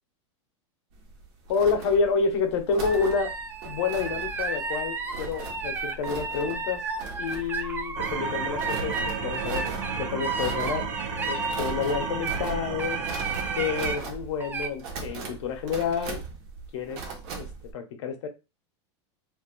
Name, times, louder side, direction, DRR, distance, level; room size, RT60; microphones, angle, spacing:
sound 1, 0.9-17.7, right 4 dB, 65° right, 1.0 m, -39 dB
voice 1, 1.5-3.3 3.6-6.8 7.2-9.7 10.0-10.9 11.3-13.0 13.5-16.2 16.7-17.0 17.3-17.5 17.7-18.3, left 5 dB, 75° left, 0.9 m, -28 dB
sound 2, 2.8-12.4 12.8-14.0 14.4-14.7, right 4 dB, 15° right, 0.3 m, -33 dB
sound 3, 8.0-14.0, right 6 dB, 85° right, 0.6 m, -34 dB
2.6 x 2.3 x 3.8 m
supercardioid pair, 135°, 15 cm